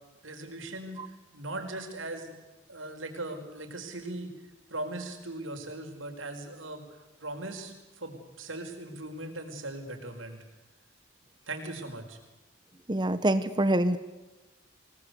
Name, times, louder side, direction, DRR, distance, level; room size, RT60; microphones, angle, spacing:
voice 1, 0.2-2.3 2.7-4.3 4.7-6.8 7.2-10.4 11.5-12.2, right 2 dB, 85° right, 4 dB, 5.0 m, -39 dB
voice 2, 12.9-14.0, right 1 dB, 20° right, 12 dB, 1.0 m, -25 dB
27.0 x 19.5 x 8.3 m, 1.1 s
head